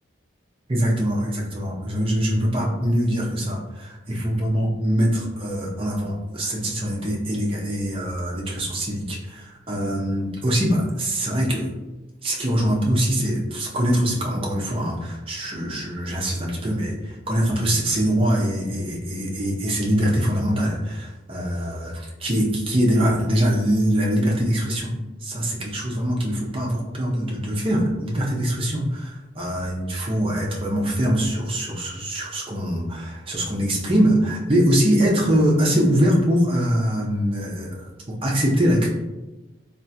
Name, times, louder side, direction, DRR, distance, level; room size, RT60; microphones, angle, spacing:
voice 1, 0.7-11.7 12.2-38.9, equal, 25° right, -2 dB, 0.6 m, -23 dB
3.3 x 2.4 x 2.7 m, 1.1 s
head